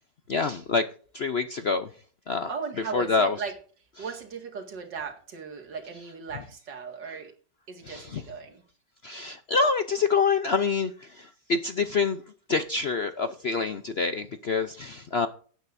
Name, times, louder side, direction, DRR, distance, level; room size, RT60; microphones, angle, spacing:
voice 1, 0.3-0.8 1.1-1.9 2.3-2.5 2.9-3.4 7.8-8.2 9.0-12.2 12.5-15.3, left 4 dB, 55° left, 9 dB, 0.7 m, -26 dB
voice 2, 2.5-3.5 4.0-7.3 7.7-8.6, right 5 dB, 80° right, 3 dB, 2.7 m, -37 dB
17.5 x 9.0 x 2.6 m, 0.43 s
omnidirectional pair, 1.9 m